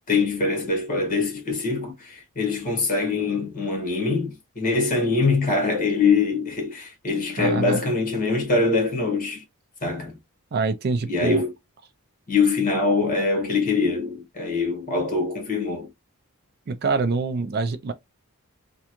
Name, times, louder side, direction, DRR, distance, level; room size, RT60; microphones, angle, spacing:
voice 1, 0.1-9.4 9.8-10.2 11.1-11.5 12.3-15.9, left 4 dB, 35° left, 1.5 m, -23 dB
voice 2, 7.4-7.8 10.5-11.4 16.7-17.9, right 4 dB, 45° right, 0.4 m, -25 dB
3.5 x 2.3 x 2.9 m
head